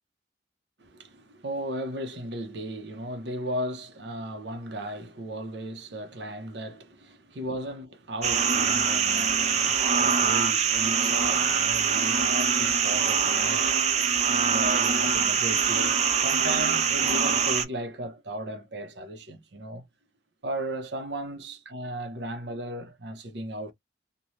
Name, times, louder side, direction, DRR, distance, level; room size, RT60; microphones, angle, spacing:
voice 1, 0.8-19.8 20.4-23.7, right 1 dB, 65° right, 0.7 m, -36 dB
sound 1, 8.2-17.6, right 6 dB, 35° right, 0.4 m, -24 dB
3.1 x 2.2 x 2.6 m
head